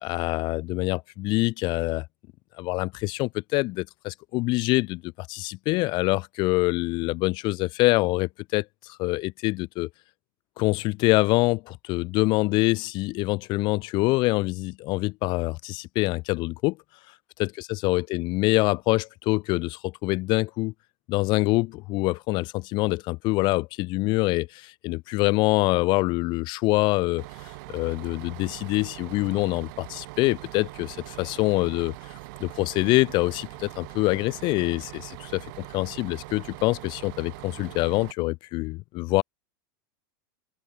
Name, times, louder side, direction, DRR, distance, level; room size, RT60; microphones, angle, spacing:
voice 1, 0.0-2.1 2.6-9.9 10.6-16.8 17.4-20.7 21.1-39.2, left 22 dB, 45° left, 0.4 m, -25 dB
Bus, 27.2-38.1, right 27 dB, 60° right, 1.6 m, -42 dB
open air
supercardioid pair, 125°, 11 cm